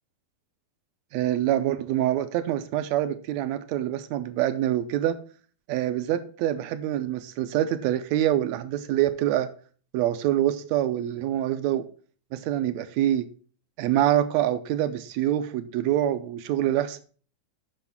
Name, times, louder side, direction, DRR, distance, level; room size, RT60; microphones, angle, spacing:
voice 1, 1.1-5.2 5.7-9.5 9.9-11.8 12.3-13.3 13.8-17.0, right 12 dB, 85° right, 11 dB, 1.6 m, -25 dB
7.9 x 6.2 x 5.8 m, 0.42 s
omnidirectional pair, 3.7 m